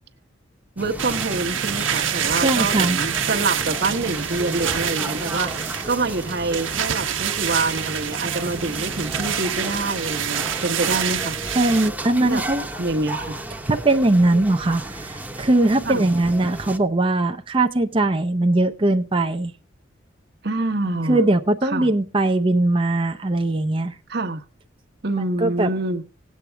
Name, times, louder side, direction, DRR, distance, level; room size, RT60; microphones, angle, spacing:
sound 1, 0.8-16.8, right 1 dB, 10° right, 1.0 m, -33 dB
voice 1, 0.8-5.5 5.8-11.4 12.2-12.4 12.8-13.4 15.9-16.1 20.4-21.2 21.6-21.9 24.1-24.4 25.0-26.0, right 3 dB, 55° right, 1.1 m, -26 dB
sound 2, 1.0-11.9, right 9 dB, 90° right, 1.1 m, -27 dB
voice 2, 2.4-3.0 11.5-12.7 13.7-19.5 21.1-23.9 25.4-25.7, right 2 dB, 25° right, 0.6 m, -20 dB
18.0 x 8.5 x 3.4 m
head